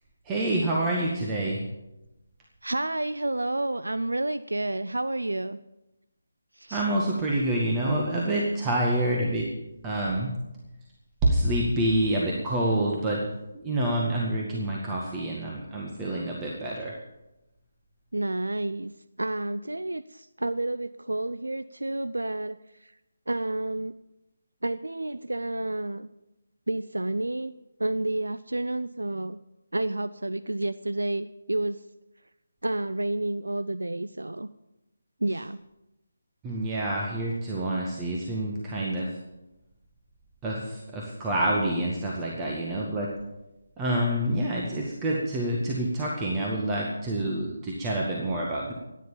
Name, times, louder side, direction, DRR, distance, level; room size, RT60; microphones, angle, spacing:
voice 1, 0.3-1.6 6.7-9.5 9.8-10.3 11.2-13.2 13.5-17.0 36.4-39.2 40.4-43.1 43.8-48.7, right 1 dB, 15° right, -3 dB, 1.9 m, -27 dB
voice 2, 2.6-5.6 6.5-6.8 18.1-18.9 19.2-22.9 23.3-23.9 24.6-26.1 26.7-27.5 27.8-29.4 29.7-31.8 32.6-34.5 35.2-35.6, right 2 dB, 80° right, 13 dB, 0.5 m, -30 dB
14.5 x 10.0 x 7.3 m, 0.96 s
figure-of-eight pair, 150°, 0 cm